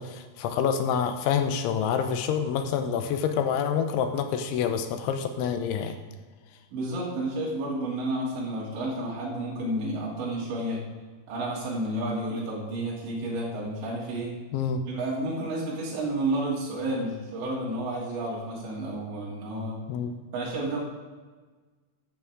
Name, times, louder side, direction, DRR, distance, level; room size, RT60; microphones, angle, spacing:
voice 1, 0.0-6.0 14.5-14.8 19.9-20.2, left 7 dB, 80° left, 7 dB, 3.3 m, -27 dB
voice 2, 6.7-10.8 11.3-14.3 14.8-19.8 20.3-20.8, right 1 dB, 70° right, -6 dB, 5.0 m, -31 dB
14.5 x 11.5 x 3.7 m, 1.4 s
omnidirectional pair, 5.4 m